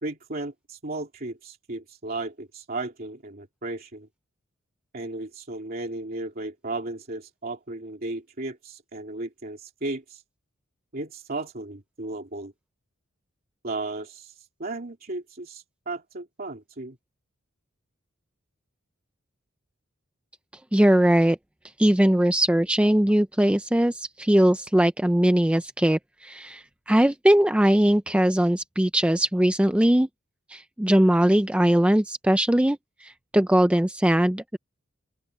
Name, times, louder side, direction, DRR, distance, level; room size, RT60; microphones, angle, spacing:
voice 1, 0.0-4.1 4.9-10.2 10.9-12.5 13.6-17.0, right 2 dB, 45° right, 2.7 m, -35 dB
voice 2, 20.7-21.4 21.8-30.1 30.5-34.6, right 1 dB, 5° right, 0.4 m, -20 dB
open air
head